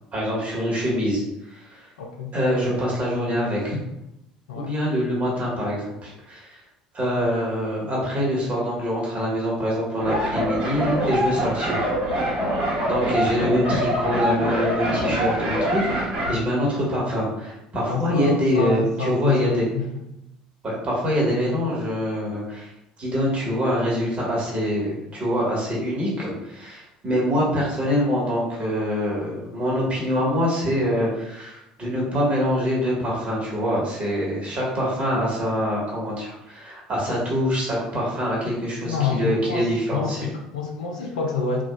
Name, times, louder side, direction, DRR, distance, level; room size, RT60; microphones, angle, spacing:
voice 1, 0.1-1.2 1.5-1.9 2.3-3.8 4.5-6.6 6.9-11.9 12.9-19.7 20.6-22.7 23.0-40.3, equal, 35° right, -5 dB, 1.5 m, -25 dB
voice 2, 2.0-2.3 4.5-4.8 17.9-19.9 38.8-41.6, left 4 dB, 80° left, 1 dB, 0.5 m, -27 dB
sound 1, 10.0-16.3, right 1 dB, 60° right, 1.5 m, -24 dB
3.6 x 2.3 x 2.3 m, 0.88 s
hypercardioid pair, 65°, 4 cm